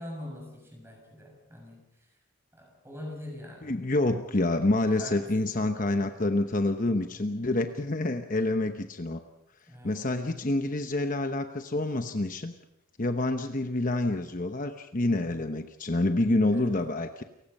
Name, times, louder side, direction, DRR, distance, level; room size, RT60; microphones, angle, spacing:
voice 1, 0.0-1.8 2.5-3.8 5.0-5.8 9.7-10.1 16.5-16.8, left 1 dB, 10° right, 0 dB, 6.9 m, -43 dB
voice 2, 3.6-9.2 9.8-12.5 13.0-17.2, left 2 dB, 40° left, 7 dB, 1.0 m, -27 dB
29.0 x 16.5 x 5.5 m, 0.87 s
head